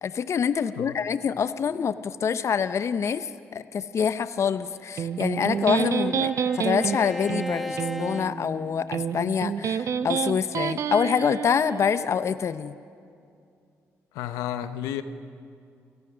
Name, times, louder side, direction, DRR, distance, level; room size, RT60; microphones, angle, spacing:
voice 1, 0.0-12.8, left 7 dB, 55° left, 13 dB, 0.7 m, -26 dB
Bowed string instrument, 4.7-9.2, equal, ahead, 1.4 m, -38 dB
Electric guitar, 5.0-11.9, right 7 dB, 65° right, 1.0 m, -29 dB
voice 2, 14.1-15.0, left 11 dB, 90° left, 11 dB, 0.8 m, -32 dB
28.0 x 18.0 x 6.3 m, 2.4 s
supercardioid pair, 55°, 6 cm